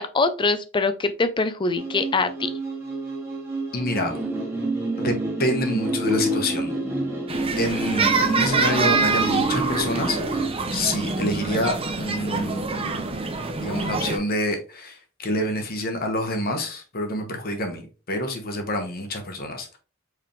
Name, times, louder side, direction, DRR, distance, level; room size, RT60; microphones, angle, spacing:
voice 1, 0.0-2.5, left 3 dB, 25° left, 0.5 m, -23 dB
sound 1, 1.7-10.5, right 2 dB, 15° right, 1.2 m, -28 dB
voice 2, 3.7-4.1 5.0-6.7 7.6-13.0 13.6-19.8, left 1 dB, 50° left, 1.1 m, -27 dB
sound 2, 7.3-14.2, right 4 dB, 30° right, 0.6 m, -25 dB
4.7 x 3.5 x 3.1 m
head